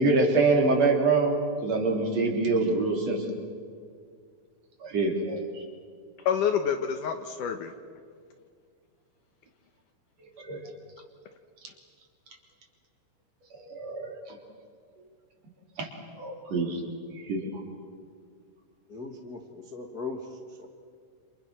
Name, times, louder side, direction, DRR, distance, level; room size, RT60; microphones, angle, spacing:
voice 1, 0.0-3.2 4.8-5.6 10.4-10.6 13.6-14.4 15.8-15.9 16.2-17.5, right 3 dB, 35° right, 1 dB, 4.3 m, -25 dB
voice 2, 6.3-7.7, left 7 dB, 85° left, 5 dB, 1.8 m, -27 dB
voice 3, 18.9-20.7, left 3 dB, 65° left, 1 dB, 0.9 m, -39 dB
29.5 x 28.0 x 6.3 m, 2.1 s
omnidirectional pair, 5.4 m